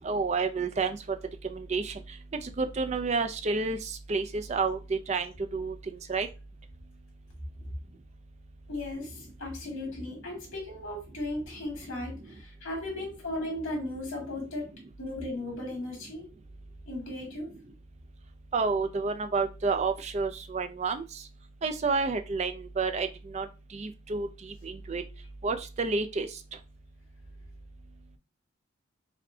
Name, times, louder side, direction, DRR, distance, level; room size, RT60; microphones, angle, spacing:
voice 1, 0.0-1.0 1.5-1.9 2.3-3.8 4.1-5.3 5.5-5.7 6.1-6.3 18.5-21.0 21.6-23.1 23.3-23.5 23.7-24.3 24.6-25.0 25.4-26.3, right 4 dB, 35° right, 8 dB, 0.3 m, -29 dB
voice 2, 8.7-14.6 15.0-16.3 16.9-17.5, left 1 dB, 75° left, -1 dB, 2.1 m, -36 dB
5.2 x 2.1 x 2.6 m, 0.30 s
head